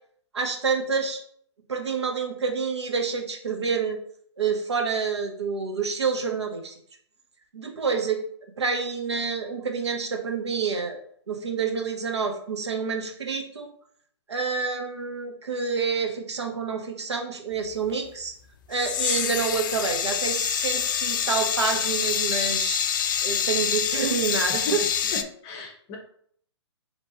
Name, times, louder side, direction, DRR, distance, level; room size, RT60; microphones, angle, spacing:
voice 1, 0.3-1.2 1.7-4.0 4.4-6.7 7.5-8.3 8.6-11.0 11.3-13.7 14.3-18.3 18.7-22.8 23.2-24.8, right 5 dB, 70° right, 3 dB, 0.9 m, -28 dB
sound 1, 18.7-25.2, left 8 dB, 45° left, 0.3 m, -26 dB
voice 2, 25.1-26.0, left 1 dB, 25° left, 3 dB, 0.7 m, -34 dB
4.4 x 3.0 x 2.9 m, 0.63 s
figure-of-eight pair, 125°, 15 cm